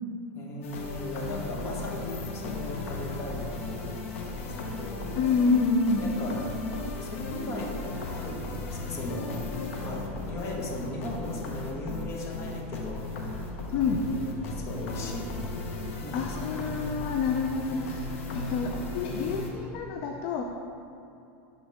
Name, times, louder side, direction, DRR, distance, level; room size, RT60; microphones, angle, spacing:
voice 1, 0.3-5.1 6.0-6.4 7.0-9.4 9.8-16.9 18.6-19.0, left 1 dB, 40° left, -1 dB, 1.3 m, -38 dB
sound 1, 0.6-19.5, left 3 dB, 80° left, 0.9 m, -36 dB
voice 2, 5.2-6.1 13.7-14.0 16.1-18.1 18.3-20.4, left 4 dB, 60° left, 3 dB, 0.5 m, -27 dB
10.0 x 4.0 x 3.6 m, 2.7 s
supercardioid pair, 120°, 7 cm